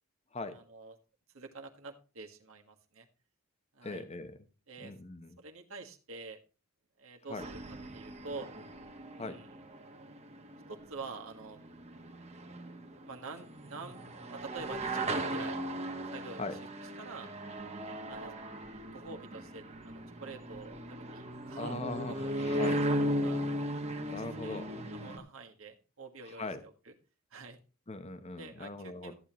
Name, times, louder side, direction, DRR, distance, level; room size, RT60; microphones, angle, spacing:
voice 1, 0.5-1.0 1.3-3.1 3.7-4.0 4.7-4.9 5.4-6.4 7.0-7.6 7.9-8.5 9.1-9.6 10.7-11.6 12.9-15.6 16.1-17.3 18.1-18.3 18.9-21.8 22.1-23.4 24.2-24.7 24.9-26.9 27.3-27.6 28.3-29.1, right 3 dB, 70° right, 3 dB, 1.6 m, -47 dB
voice 2, 3.8-4.3 4.8-5.3 7.3-7.4 9.2-9.4 16.4-16.5 21.6-22.8 24.1-24.7 26.4-26.6 27.9-29.1, left 3 dB, 30° left, 10 dB, 0.9 m, -40 dB
sound 1, 7.4-25.2, right 1 dB, 30° right, 1.4 m, -37 dB
14.0 x 8.8 x 3.1 m, 0.35 s
head